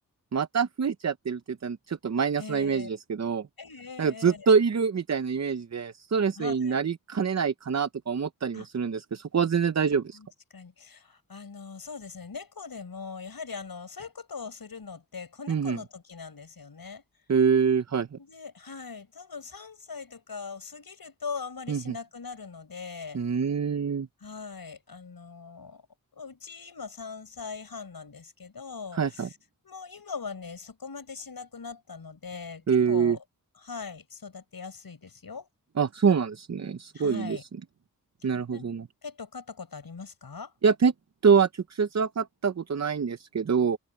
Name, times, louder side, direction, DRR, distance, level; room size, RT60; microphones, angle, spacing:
voice 1, 0.3-3.5 4.0-10.2 15.5-15.8 17.3-18.2 21.7-22.0 23.1-24.1 28.9-29.3 32.7-33.2 35.8-37.5 38.2-38.8 40.6-40.9 41.2-43.8, right 6 dB, 50° right, 0.7 m, -25 dB
voice 2, 2.4-2.9 3.6-4.5 6.4-6.8 8.5-8.7 10.1-17.0 18.2-23.2 24.2-25.8 26.1-29.3 29.6-33.2 33.6-35.5 36.9-37.4 38.5-38.7 39.0-40.5, left 5 dB, 90° left, 6.5 m, -41 dB
wide cardioid pair, 55°, 35 cm